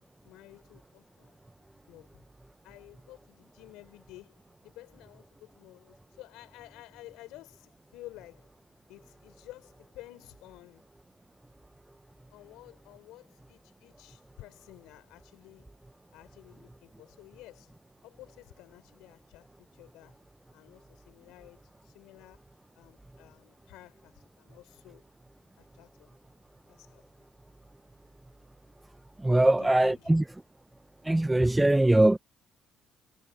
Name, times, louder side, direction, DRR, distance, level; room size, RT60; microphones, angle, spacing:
voice 1, 0.0-1.4 1.9-2.2 2.6-8.5 8.9-10.9 12.3-15.7 16.1-17.8 18.0-20.2 20.5-22.4 22.7-25.0 25.6-26.2 26.7-27.0 29.3-30.2, left 17 dB, 85° left, 4.3 m, -52 dB
voice 2, 29.2-30.2 31.0-32.2, right 1 dB, 10° right, 0.5 m, -22 dB
cardioid pair, 90°, 0 cm